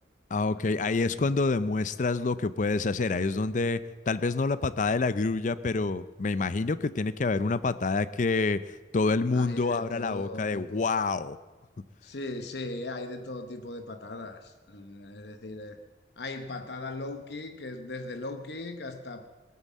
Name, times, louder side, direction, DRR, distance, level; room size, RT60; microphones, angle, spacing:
voice 1, 0.3-11.4, left 3 dB, 45° left, 15 dB, 0.5 m, -27 dB
voice 2, 9.3-10.8 12.0-15.8 16.2-19.3, left 2 dB, 70° left, 7 dB, 0.9 m, -38 dB
19.0 x 9.6 x 7.4 m, 1.3 s
head